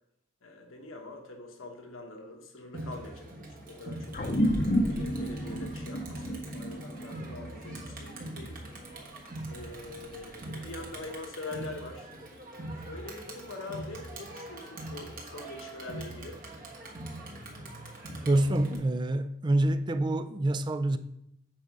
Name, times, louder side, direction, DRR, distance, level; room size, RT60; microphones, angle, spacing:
voice 1, 0.4-4.2 4.7-8.6 9.5-12.1 12.9-16.4, left 2 dB, 85° left, 1.1 m, -44 dB
Crowd, 2.7-18.8, right 1 dB, 45° right, 1.4 m, -43 dB
sound 1, 4.1-8.9, equal, 40° left, 0.7 m, -31 dB
voice 2, 18.3-21.0, right 1 dB, 20° right, 0.3 m, -26 dB
7.5 x 4.8 x 5.2 m
head